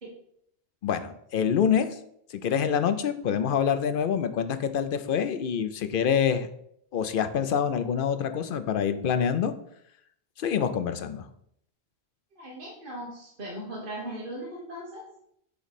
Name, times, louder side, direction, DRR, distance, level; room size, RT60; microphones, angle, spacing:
voice 1, 0.8-1.9 2.4-6.5 6.9-9.5 10.4-11.2, left 8 dB, 60° left, 10 dB, 0.7 m, -26 dB
voice 2, 12.4-15.0, right 1 dB, 55° right, -5 dB, 1.5 m, -38 dB
8.2 x 3.1 x 4.1 m, 0.71 s
omnidirectional pair, 1.1 m